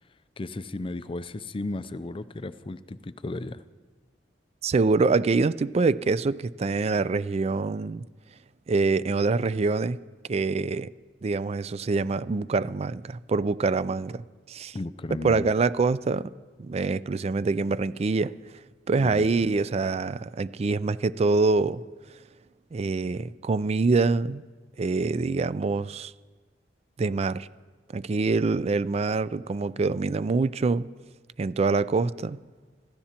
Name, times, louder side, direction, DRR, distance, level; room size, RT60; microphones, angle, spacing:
voice 1, 0.4-3.6 14.7-15.5 19.0-19.3, left 2 dB, 30° left, 0.5 m, -34 dB
voice 2, 4.6-8.0 8.7-10.0 10.3-10.9 11.2-14.8 15.2-16.3 16.6-18.3 18.9-21.8 22.7-24.4 24.8-26.1 27.0-27.5 27.9-30.9 31.4-32.4, right 3 dB, 35° right, 0.3 m, -25 dB
25.5 x 13.5 x 2.9 m
head